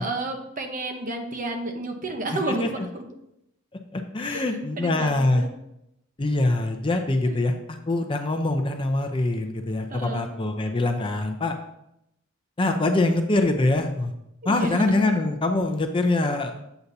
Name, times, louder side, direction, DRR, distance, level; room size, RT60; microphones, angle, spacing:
voice 1, 0.0-3.0 4.2-4.4 4.8-5.5 7.2-7.3 9.9-10.3 14.4-15.1, right 2 dB, 40° right, 4 dB, 0.9 m, -31 dB
voice 2, 3.9-5.4 6.2-11.5 12.6-14.1 14.4-16.5, left 2 dB, 25° left, 5 dB, 0.5 m, -24 dB
8.0 x 7.0 x 2.7 m, 0.82 s
head